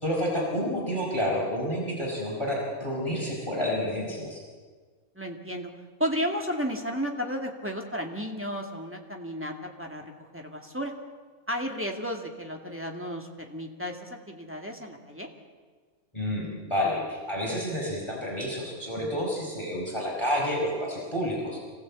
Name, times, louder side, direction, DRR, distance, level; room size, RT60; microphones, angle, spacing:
voice 1, 0.0-4.4 16.1-21.6, equal, 20° left, -3 dB, 4.8 m, -29 dB
voice 2, 5.2-5.7 6.0-10.9 11.5-15.3, equal, 10° right, 2 dB, 2.2 m, -33 dB
25.5 x 16.5 x 8.4 m, 1.5 s
omnidirectional pair, 1.5 m